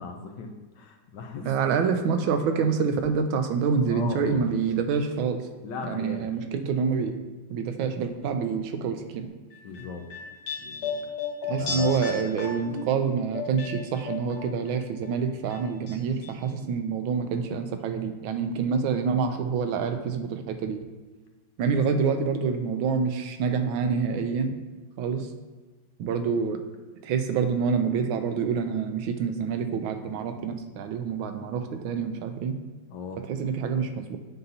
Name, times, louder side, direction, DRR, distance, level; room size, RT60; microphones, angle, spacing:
voice 1, 0.0-1.7 3.9-4.8 5.6-6.3 9.6-10.1 10.6-11.0 11.6-12.0 32.9-33.2, left 3 dB, 70° left, 3 dB, 1.2 m, -38 dB
voice 2, 1.4-5.4 5.9-7.2 7.5-9.3 11.5-20.8 21.6-24.6 25.0-25.3 26.0-26.6 27.0-32.6 33.3-34.2, right 6 dB, 85° right, 7 dB, 1.4 m, -27 dB
sound 1, 9.5-14.7 15.0-16.0 16.2-16.3, left 5 dB, 90° left, 1.8 m, -34 dB
7.8 x 5.5 x 2.8 m, 1.3 s
omnidirectional pair, 2.2 m